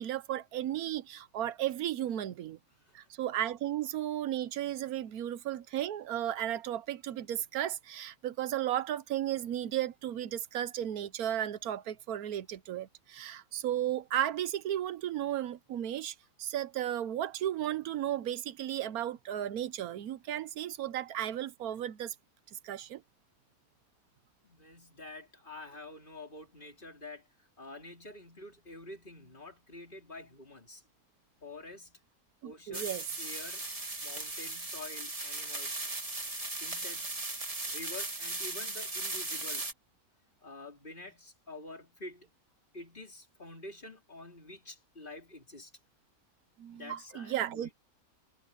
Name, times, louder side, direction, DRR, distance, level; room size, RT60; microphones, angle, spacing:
voice 1, 0.0-2.6 2.9-22.1 22.5-23.0 32.4-33.0 46.6-47.7, right 11 dB, 80° right, 1.2 m, -34 dB
voice 2, 24.4-27.3 27.6-30.8 31.4-32.0 32.4-33.7 34.0-35.7 36.6-37.2 37.6-39.7 40.4-42.3 42.7-45.7 46.7-47.7, left 2 dB, 35° left, 3.9 m, -48 dB
sound 1, 32.7-39.7, right 2 dB, 25° right, 2.0 m, -37 dB
omnidirectional pair, 1.5 m